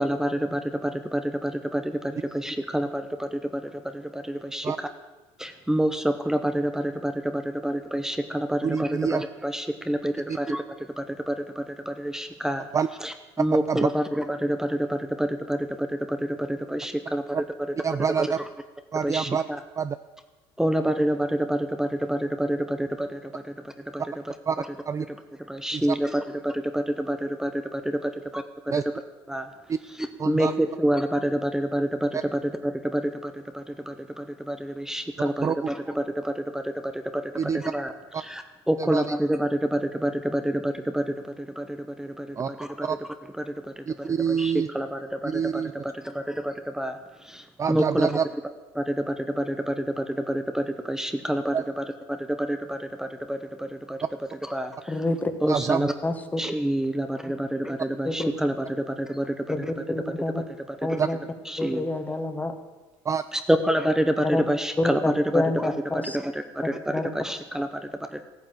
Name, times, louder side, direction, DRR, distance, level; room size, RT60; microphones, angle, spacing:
voice 1, 0.0-4.7 5.4-10.6 11.0-12.7 13.0-17.4 18.2-18.3 19.0-19.3 20.6-23.5 23.9-24.0 24.6-24.7 25.5-28.4 29.3-29.5 30.3-37.3 37.6-37.9 38.2-42.9 43.4-43.7 44.0-45.3 45.8-47.0 47.2-48.1 48.7-54.0 54.5-54.7 55.4-55.9 56.4-59.4 60.9-61.0 61.5-61.8 63.5-65.0 65.6-66.8 67.1-68.2, right 1 dB, 5° right, 7 dB, 0.9 m, -28 dB
voice 2, 8.6-9.2 10.3-10.4 12.7-12.9 13.7-13.9 17.3-17.4 17.8-18.4 18.9-19.4 19.8-20.0 24.5-25.1 25.7-26.0 28.7-28.8 29.7-29.8 30.2-30.5 32.1-32.2 35.4-35.7 37.4-37.6 38.1-38.2 38.8-39.1 42.4-42.5 42.8-43.0 43.9-44.7 45.2-45.7 47.6-48.2 51.5-51.6 55.5-55.9 61.0-61.1 63.1-63.2, right 7 dB, 25° right, 12 dB, 0.4 m, -26 dB
voice 3, 54.9-55.3 56.0-56.4 58.0-58.3 59.5-60.4 60.8-61.2 61.6-62.6 64.2-64.4 64.8-66.2 66.9-67.1, left 2 dB, 15° left, 8 dB, 1.5 m, -27 dB
14.5 x 9.4 x 7.6 m, 1.2 s
cardioid pair, 105°, 12 cm